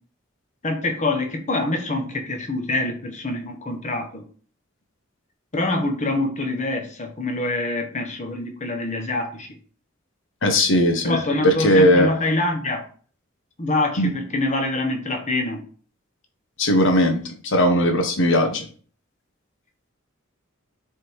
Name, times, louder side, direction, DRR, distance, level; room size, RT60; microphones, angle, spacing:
voice 1, 0.6-4.2 5.5-9.5 11.0-12.8 13.6-15.6, left 2 dB, 35° left, 1.2 m, -25 dB
voice 2, 10.4-11.2 11.4-12.1 14.0-14.1 16.6-18.7, equal, 65° left, 1.2 m, -18 dB
6.9 x 3.6 x 4.6 m
head